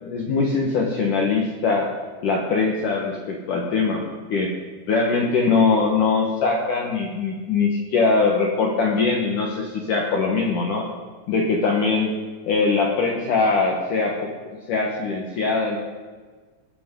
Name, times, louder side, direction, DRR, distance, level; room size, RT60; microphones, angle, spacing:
voice 1, 0.0-1.9 2.2-4.0 4.3-4.5 4.9-10.9 11.3-12.1 12.5-14.3 14.7-15.8, left 4 dB, 85° left, 0 dB, 1.8 m, -22 dB
18.5 x 14.0 x 3.8 m, 1.4 s
omnidirectional pair, 6.0 m